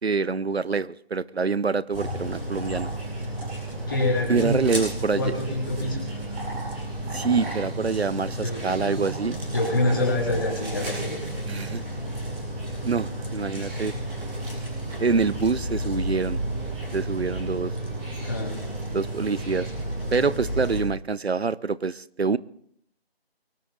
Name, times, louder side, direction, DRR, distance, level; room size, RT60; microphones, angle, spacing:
voice 1, 0.0-2.9 4.3-5.3 7.1-9.4 11.5-11.8 12.8-13.9 15.0-16.4 16.9-17.7 18.9-19.7 20.1-22.4, right 4 dB, 85° right, 19 dB, 0.7 m, -26 dB
sound 1, 1.9-20.8, right 1 dB, 5° right, 2.8 m, -32 dB
voice 2, 3.9-6.1 8.4-8.9 9.2-11.2 18.2-18.5, left 2 dB, 20° left, -2 dB, 3.5 m, -27 dB
23.5 x 11.5 x 3.9 m, 0.68 s
figure-of-eight pair, 165°, 31 cm